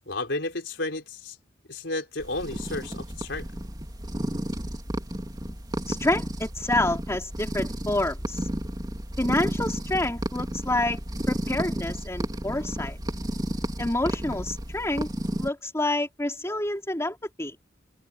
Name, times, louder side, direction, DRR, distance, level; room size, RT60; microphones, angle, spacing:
voice 1, 0.0-1.4 1.7-3.4, left 2 dB, 70° left, 5.2 m, -32 dB
sound 1, 2.2-15.5, equal, 20° right, 3.3 m, -32 dB
voice 2, 5.9-8.5 9.2-11.0 11.3-13.0 13.8-15.1 15.4-17.6, left 1 dB, 15° left, 3.8 m, -28 dB
head